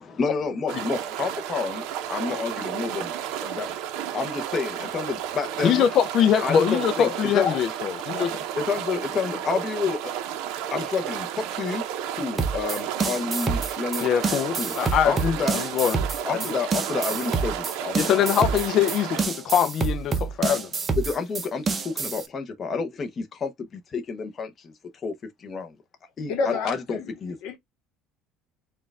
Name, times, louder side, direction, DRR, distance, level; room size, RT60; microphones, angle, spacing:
voice 1, 0.0-3.1 3.4-3.7 4.1-5.9 6.4-7.5 8.6-10.1 10.7-11.8 12.1-14.1 14.6-14.7 15.1-15.6 16.2-18.4 21.0-24.7 25.0-25.1 25.4-25.7 26.2-26.3 26.6-27.4, left 5 dB, 25° left, 0.8 m, -29 dB
sound 1, 0.7-19.3, right 10 dB, 70° right, 0.7 m, -32 dB
voice 2, 5.6-8.3 14.0-16.0 18.0-20.7, left 8 dB, 40° left, 0.4 m, -23 dB
sound 2, 12.4-22.3, right 4 dB, 20° right, 0.6 m, -27 dB
voice 3, 26.3-27.6, left 5 dB, 60° left, 1.2 m, -30 dB
4.3 x 2.3 x 3.4 m
cardioid pair, 160°, 0 cm